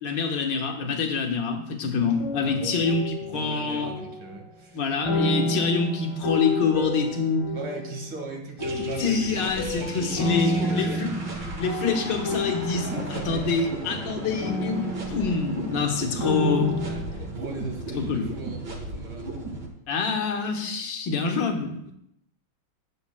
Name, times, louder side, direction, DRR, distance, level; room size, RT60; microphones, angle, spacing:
voice 1, 0.0-3.9 4.7-7.5 9.0-11.1 11.6-16.7 18.1-18.3 19.9-21.8, left 5 dB, 65° left, 2 dB, 1.8 m, -26 dB
sound 1, 2.1-4.5 5.1-8.2 8.6-15.9 16.2-17.0, left 1 dB, 90° left, 2.6 m, -30 dB
voice 2, 2.4-2.9 3.2-4.8 7.5-9.4 9.7-9.9 10.2-11.1 12.7-13.5 16.8-18.6 18.9-19.3 20.2-20.8 21.1-21.5, right 2 dB, 75° right, 1 dB, 2.5 m, -38 dB
sound 2, 8.6-19.7, right 2 dB, 60° right, 2.1 m, -35 dB
17.5 x 6.9 x 2.2 m, 0.77 s
omnidirectional pair, 2.2 m